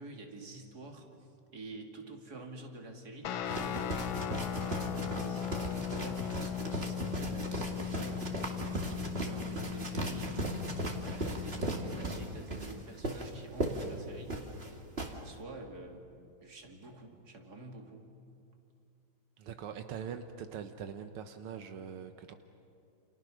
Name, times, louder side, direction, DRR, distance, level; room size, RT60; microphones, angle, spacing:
voice 1, 0.0-4.2 4.6-14.4 14.7-16.0 16.4-18.1, right 2 dB, 45° right, 3 dB, 3.1 m, -48 dB
Guitar, 3.2-12.4, left 9 dB, 70° left, 1.6 m, -38 dB
sound 1, 3.5-15.1, right 1 dB, 30° right, 2.4 m, -37 dB
voice 2, 19.4-22.4, right 7 dB, 85° right, 7 dB, 1.9 m, -42 dB
29.5 x 29.0 x 6.4 m, 2.6 s
omnidirectional pair, 2.3 m